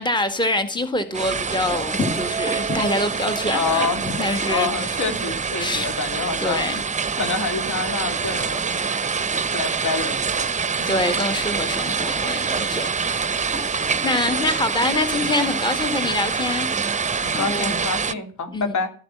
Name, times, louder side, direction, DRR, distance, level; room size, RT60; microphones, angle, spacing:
voice 1, 0.0-5.0 5.6-5.9 6.4-6.8 10.9-13.5 14.0-17.0 17.3-17.7 18.5-18.7, left 2 dB, 15° left, 1.8 m, -25 dB
sound 1, 1.1-18.1, right 5 dB, 20° right, 0.8 m, -25 dB
voice 2, 3.5-4.0 4.4-6.6 7.2-8.9 9.3-10.9 11.2-11.4 13.7-14.1 17.2-18.9, left 4 dB, 55° left, 3.0 m, -28 dB
14.0 x 10.5 x 7.4 m
hypercardioid pair, 55°, 34 cm